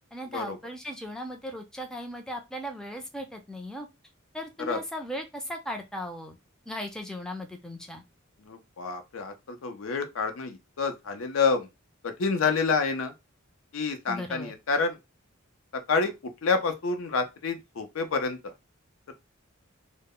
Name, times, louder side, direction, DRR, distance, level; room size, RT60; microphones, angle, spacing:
voice 1, 0.1-3.9 4.3-6.4 6.7-8.0 14.1-14.5, equal, 5° left, 0.4 m, -37 dB
voice 2, 8.5-11.7 12.0-13.1 13.7-15.0 15.9-18.4 19.1-19.2, left 4 dB, 75° left, 0.5 m, -28 dB
2.0 x 2.0 x 3.6 m
head